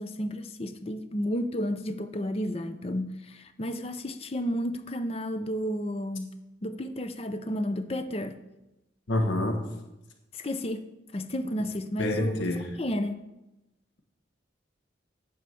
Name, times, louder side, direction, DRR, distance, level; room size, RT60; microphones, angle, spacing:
voice 1, 0.0-6.3 6.6-8.4 10.3-13.2, equal, 30° left, 0.5 m, -32 dB
voice 2, 9.1-9.6 12.0-12.7, left 1 dB, 80° left, 1.1 m, -27 dB
9.2 x 4.6 x 6.9 m
head